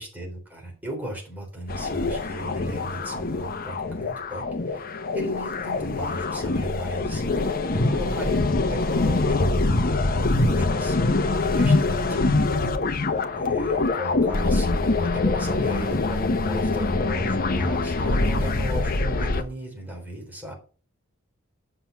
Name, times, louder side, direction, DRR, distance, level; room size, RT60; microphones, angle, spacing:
voice 1, 0.0-9.4 10.1-12.6 13.3-20.5, right 1 dB, 10° right, 0 dB, 3.7 m, -36 dB
sound 1, 1.7-19.4, left 3 dB, 45° left, 0.9 m, -24 dB
7.9 x 5.9 x 6.5 m, 0.37 s
head